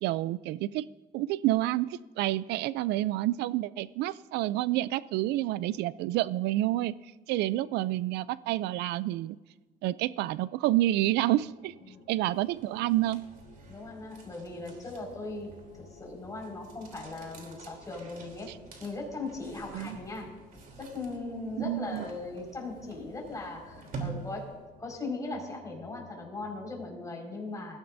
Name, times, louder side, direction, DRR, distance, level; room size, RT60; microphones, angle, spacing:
voice 1, 0.0-0.9 1.1-7.0 7.3-9.4 9.8-11.7 12.1-13.2 19.7-20.0 21.6-22.0, right 15 dB, 85° right, 18 dB, 0.4 m, -29 dB
sound 1, 10.9-26.9, left 5 dB, 65° left, 5.5 m, -57 dB
sound 2, 12.3-24.7, right 4 dB, 55° right, 3.2 m, -47 dB
voice 2, 13.7-18.5 18.8-20.3 20.8-27.8, left 3 dB, 20° left, -1 dB, 5.1 m, -39 dB
20.5 x 15.5 x 2.7 m, 1.3 s
cardioid pair, 110°, 17 cm